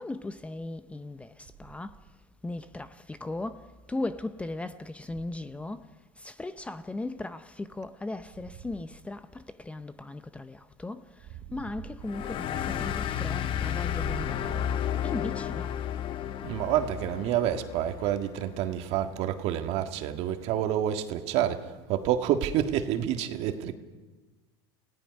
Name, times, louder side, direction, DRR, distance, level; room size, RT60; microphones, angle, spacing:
voice 1, 0.0-2.0 2.4-5.9 6.2-14.7 15.0-15.7, left 2 dB, 10° left, 0.7 m, -37 dB
sound 1, 12.1-19.1, left 10 dB, 40° left, 0.9 m, -33 dB
voice 2, 16.4-23.7, right 11 dB, 55° right, 1.8 m, -28 dB
29.5 x 17.5 x 5.3 m
supercardioid pair, 115°, 13 cm